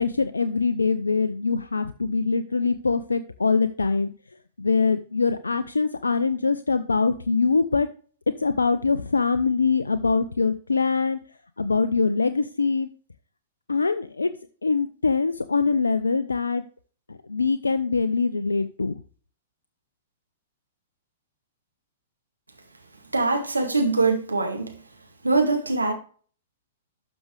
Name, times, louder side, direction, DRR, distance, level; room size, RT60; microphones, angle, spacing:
voice 1, 0.0-4.1 4.6-7.9 8.4-11.2 11.6-12.9 13.7-14.3 14.6-16.6 17.1-19.0, left 4 dB, 75° left, 0.5 m, -23 dB
voice 2, 23.1-24.7 25.2-25.9, right 3 dB, 80° right, 2.1 m, -22 dB
12.5 x 6.2 x 3.3 m
figure-of-eight pair, 105°, 0 cm